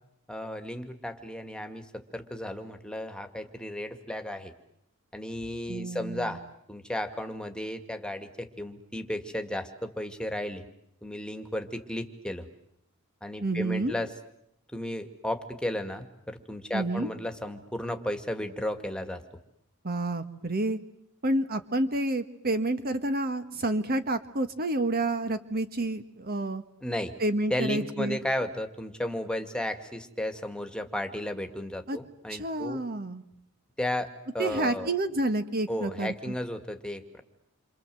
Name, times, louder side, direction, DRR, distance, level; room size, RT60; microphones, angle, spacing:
voice 1, 0.3-4.5 5.1-6.4 6.7-10.6 11.0-12.4 13.2-14.1 14.7-19.2 26.8-27.1 27.5-32.8 33.8-34.9 35.7-37.2, left 1 dB, 5° left, 6 dB, 2.2 m, -34 dB
voice 2, 5.7-6.4 13.4-13.9 16.7-17.1 19.8-20.8 21.2-26.6 27.2-28.2 31.9-32.0 32.3-33.2 34.4-36.1, right 2 dB, 45° right, 10 dB, 1.5 m, -29 dB
29.0 x 26.5 x 7.8 m, 0.76 s
head